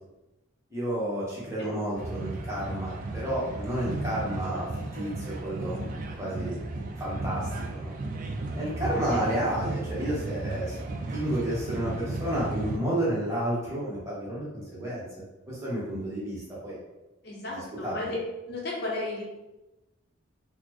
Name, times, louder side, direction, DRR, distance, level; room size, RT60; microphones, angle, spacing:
voice 1, 0.7-5.9 6.2-6.6 7.0-7.9 8.5-10.8 11.1-15.1 15.5-16.8 17.4-18.1, right 1 dB, 15° right, -7 dB, 1.0 m, -31 dB
sound 1, 1.9-12.8, right 2 dB, 40° right, 0.3 m, -35 dB
voice 2, 17.2-18.2 18.5-19.2, left 2 dB, 50° left, -3 dB, 0.7 m, -34 dB
4.1 x 2.0 x 2.9 m, 1.0 s
head